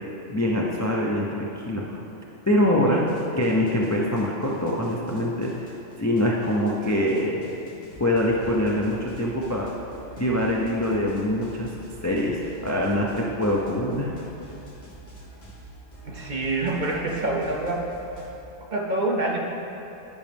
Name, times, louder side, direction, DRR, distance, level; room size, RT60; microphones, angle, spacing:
voice 1, 0.3-2.0 2.5-3.0 3.4-5.7 6.0-7.4 8.0-9.7 10.2-11.7 12.0-14.1, left 1 dB, 20° left, -3 dB, 0.4 m, -24 dB
sound 1, 2.9-18.3, right 1 dB, 35° left, 1.4 m, -46 dB
voice 2, 16.0-17.8 18.7-19.4, right 2 dB, 45° right, -1 dB, 0.8 m, -26 dB
11.0 x 6.2 x 3.5 m, 3.0 s
omnidirectional pair, 1.2 m